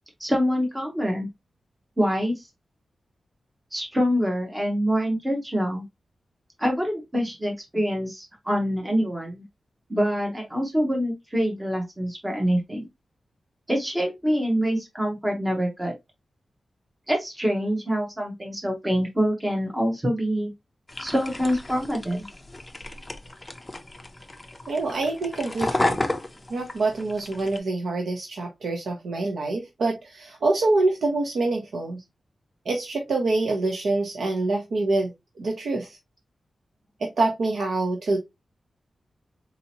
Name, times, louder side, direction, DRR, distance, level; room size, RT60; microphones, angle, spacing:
voice 1, 0.2-1.3 2.0-2.5 3.7-5.8 6.6-9.4 9.9-12.9 13.7-15.9 17.1-20.5 21.0-22.3, equal, 15° right, 0.8 m, -25 dB
sound 1, 20.9-27.6, left 2 dB, 15° left, 0.5 m, -32 dB
voice 2, 24.7-26.0 26.5-32.0 32.7-35.1 35.4-36.0 37.0-38.2, right 2 dB, 80° right, 0.7 m, -25 dB
4.0 x 2.8 x 2.7 m
wide cardioid pair, 180°, 0 cm